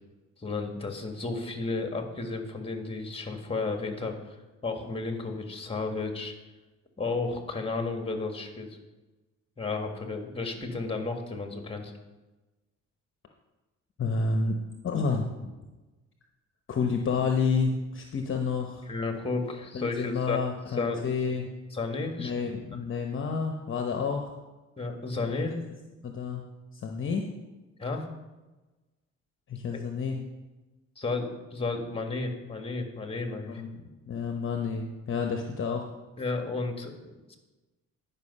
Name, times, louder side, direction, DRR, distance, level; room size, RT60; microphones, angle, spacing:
voice 1, 0.4-4.2 4.6-6.3 7.0-8.8 9.6-11.9 18.9-20.4 20.8-21.0 21.7-22.3 24.8-25.6 27.8-28.1 30.9-33.6 36.2-37.4, left 3 dB, 20° left, 4 dB, 1.7 m, -32 dB
voice 2, 14.0-14.6 14.8-15.5 16.7-18.8 19.7-21.5 22.2-24.3 26.0-26.4 26.7-27.3 29.5-30.2 33.5-35.8, left 5 dB, 45° left, 3 dB, 0.9 m, -30 dB
10.5 x 5.5 x 5.5 m, 1.1 s
cardioid pair, 90°, 30 cm